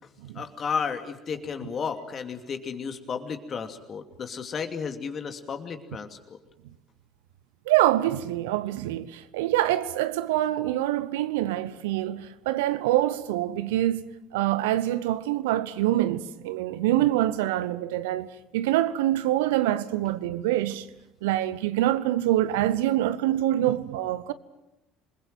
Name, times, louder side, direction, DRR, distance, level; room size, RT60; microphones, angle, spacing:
voice 1, 0.3-6.4, left 6 dB, 40° left, 2.7 m, -33 dB
voice 2, 7.7-14.1 14.3-20.9 21.2-24.3, right 14 dB, 70° right, 0.9 m, -25 dB
27.5 x 21.0 x 7.7 m
figure-of-eight pair, 60°, 0 cm